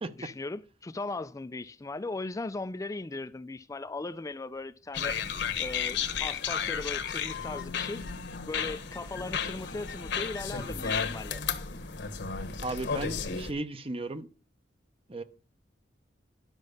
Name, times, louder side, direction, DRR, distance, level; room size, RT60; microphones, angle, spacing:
voice 1, 0.2-5.2 5.6-8.0 8.5-11.4, left 2 dB, 20° left, 0.4 m, -38 dB
sound 1, 4.9-13.5, left 6 dB, 65° left, 1.1 m, -33 dB
voice 2, 12.6-14.3 15.1-15.2, right 2 dB, 30° right, 0.7 m, -35 dB
11.5 x 5.4 x 6.5 m
head